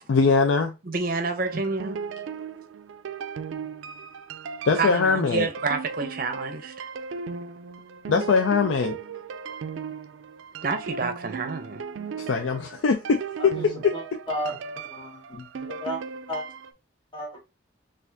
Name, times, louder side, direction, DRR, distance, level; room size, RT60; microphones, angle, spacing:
voice 1, 0.1-0.7 4.6-5.5 8.1-9.0 12.2-13.9, left 5 dB, 80° left, 0.4 m, -22 dB
voice 2, 0.9-2.0 4.8-6.9 10.6-11.8, right 4 dB, 45° right, 0.6 m, -28 dB
sound 1, 1.4-16.7, right 6 dB, 85° right, 0.4 m, -37 dB
voice 3, 14.9-16.0 16.3-16.4 17.1-17.3, equal, 25° left, 1.3 m, -32 dB
4.2 x 2.5 x 2.6 m
head